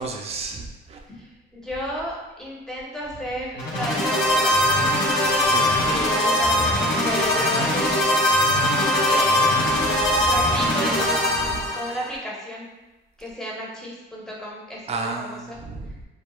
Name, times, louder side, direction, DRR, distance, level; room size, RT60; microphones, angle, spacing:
voice 1, 0.0-1.0 5.4-5.9 9.7-10.3 11.4-11.7 14.9-16.0, right 3 dB, 30° right, 2 dB, 0.4 m, -33 dB
voice 2, 1.1-4.6 5.9-6.8 7.1-8.2 9.0-9.7 10.3-12.7 13.2-15.6, equal, 5° left, -4 dB, 0.7 m, -33 dB
sound 1, 3.6-12.1, left 1 dB, 70° left, 0.7 m, -21 dB
2.3 x 2.1 x 3.0 m, 1.1 s
cardioid pair, 90°, 20 cm